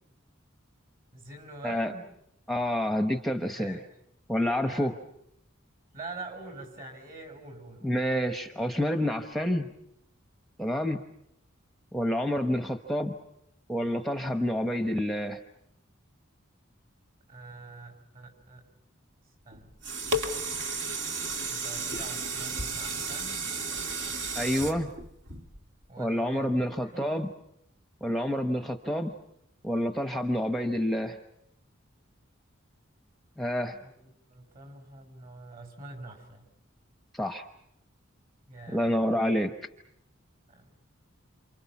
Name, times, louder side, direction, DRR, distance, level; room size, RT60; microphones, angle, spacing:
voice 1, 1.1-2.1 3.5-3.8 4.6-4.9 5.9-8.0 17.3-18.6 19.5-19.7 21.5-23.5 25.9-27.2 33.8-36.5 38.5-38.9 40.5-40.7, right 2 dB, 45° right, 6 dB, 5.7 m, -45 dB
voice 2, 2.5-3.8 4.3-4.9 7.8-9.7 10.6-11.0 11.9-13.2 13.7-15.4 24.3-24.9 26.0-27.3 28.0-29.1 29.6-31.2 33.4-33.8 37.1-37.4 38.7-39.5, equal, ahead, 6 dB, 0.9 m, -28 dB
sound 1, 19.5-25.9 26.4-26.5, right 2 dB, 60° right, 2.2 m, -33 dB
28.5 x 28.0 x 5.9 m, 0.81 s
head